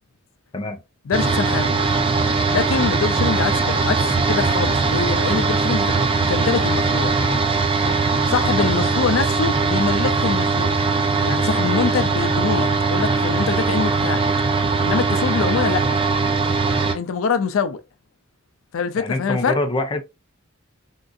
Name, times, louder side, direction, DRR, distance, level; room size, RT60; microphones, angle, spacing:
voice 1, 1.1-1.8 2.5-7.2 8.3-10.8 11.2-14.3 14.8-15.9 16.9-17.8 18.7-19.6, left 5 dB, 80° left, 0.4 m, -24 dB
sound 1, 1.1-16.9, right 4 dB, 25° right, 0.4 m, -20 dB
voice 2, 13.3-13.7 19.0-20.0, left 2 dB, 25° left, 0.5 m, -25 dB
3.7 x 2.6 x 2.3 m
head